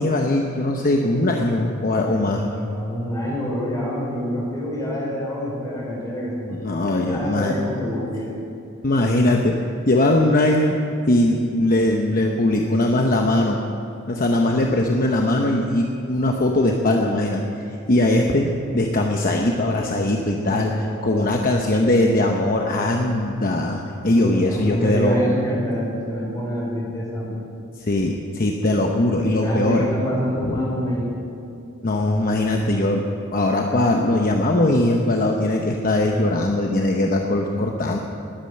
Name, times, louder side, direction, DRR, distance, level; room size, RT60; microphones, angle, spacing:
voice 1, 0.0-2.4 6.5-7.5 8.8-9.6 9.9-10.8 11.1-13.6 14.1-17.4 17.9-25.2 27.8-29.8 30.4-30.6 31.8-33.0 33.3-38.0, left 1 dB, 40° left, 1 dB, 0.9 m, -20 dB
voice 2, 2.0-8.4 20.4-21.5 24.1-27.4 28.0-28.1 29.4-31.2, equal, 15° left, -4 dB, 4.6 m, -27 dB
20.0 x 9.0 x 6.6 m, 2.6 s
head